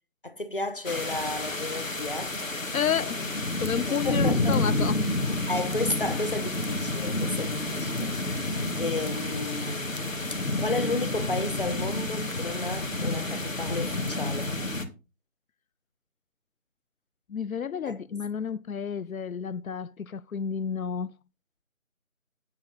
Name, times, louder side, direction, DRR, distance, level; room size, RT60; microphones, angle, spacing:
voice 1, 0.2-2.3 3.9-4.6 5.5-8.1 8.8-10.0 10.3-14.5 17.9-18.2, left 2 dB, 40° left, 1.1 m, -33 dB
sound 1, 0.8-14.8, left 2 dB, 70° left, 1.9 m, -29 dB
voice 2, 2.7-3.3 3.6-5.1 17.3-21.1, left 7 dB, 85° left, 0.5 m, -31 dB
9.4 x 8.1 x 4.0 m
figure-of-eight pair, 170°, 41 cm